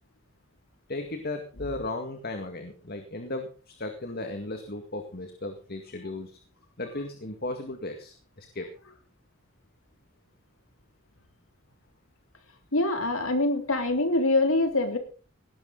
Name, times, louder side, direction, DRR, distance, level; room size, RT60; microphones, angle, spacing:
voice 1, 0.9-6.4 6.8-8.7, left 2 dB, 50° left, 6 dB, 2.1 m, -36 dB
voice 2, 12.7-15.0, left 2 dB, 85° left, 6 dB, 3.3 m, -24 dB
18.0 x 12.0 x 4.0 m, 0.37 s
head